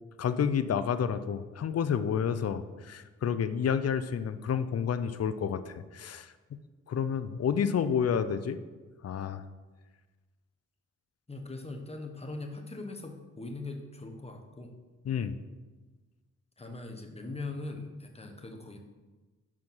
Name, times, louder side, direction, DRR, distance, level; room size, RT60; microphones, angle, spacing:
voice 1, 0.2-6.6 6.9-8.6 9.0-9.4 15.1-15.4, left 7 dB, 50° left, 12 dB, 0.6 m, -30 dB
voice 2, 11.3-14.7 16.6-18.8, left 2 dB, 20° left, 3 dB, 1.1 m, -41 dB
6.0 x 4.9 x 5.6 m, 1.3 s
cardioid pair, 65°, 32 cm